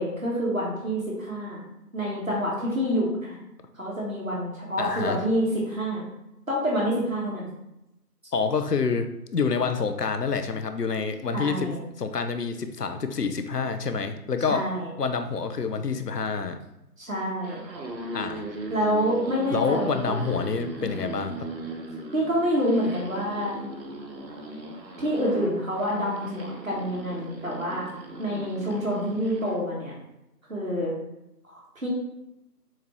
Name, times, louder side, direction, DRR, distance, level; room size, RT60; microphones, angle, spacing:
voice 1, 0.0-1.7 1.9-3.4 3.7-6.0 6.5-7.5 11.3-11.8 14.5-14.9 17.0-17.6 18.7-20.2 20.8-21.1 22.1-23.7 24.5-24.6 25.0-27.9 28.2-29.9 30.5-30.9 31.4-31.9, equal, 50° right, -5 dB, 1.5 m, -27 dB
voice 2, 4.8-5.2 8.3-11.7 12.0-14.6 15.0-16.6 18.1-18.5 19.5-21.5, left 5 dB, 70° left, 8 dB, 0.6 m, -27 dB
sound 1, 17.4-29.6, right 2 dB, 80° right, 1.0 m, -39 dB
7.2 x 2.4 x 3.0 m, 0.89 s
figure-of-eight pair, 175°, 50 cm